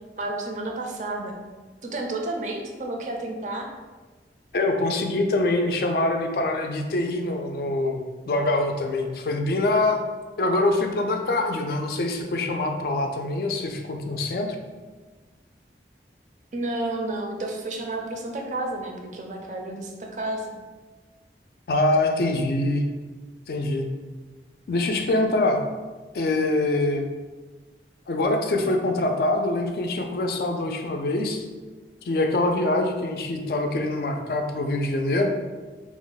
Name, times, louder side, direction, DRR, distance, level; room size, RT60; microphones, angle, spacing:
voice 1, 0.2-1.3 1.8-3.7 16.5-20.5, right 2 dB, 45° right, 2 dB, 0.4 m, -31 dB
voice 2, 4.5-8.0 8.3-10.0 10.4-14.5 21.7-22.8 23.5-23.9 24.7-25.6 26.1-27.1 28.1-31.5 32.0-35.3, left 2 dB, 55° left, 4 dB, 0.3 m, -24 dB
2.9 x 2.1 x 3.9 m, 1.3 s
head